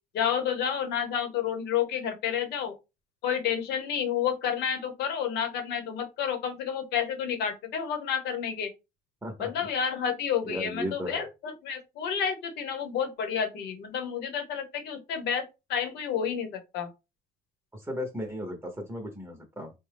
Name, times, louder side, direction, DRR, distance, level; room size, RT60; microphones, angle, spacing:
voice 1, 0.1-2.7 3.2-8.7 9.4-16.9, left 8 dB, 80° left, 1.0 m, -30 dB
voice 2, 9.2-9.7 10.4-11.3 17.7-19.7, equal, 10° right, 0.9 m, -36 dB
4.0 x 2.2 x 3.4 m
cardioid pair, 110°, 17 cm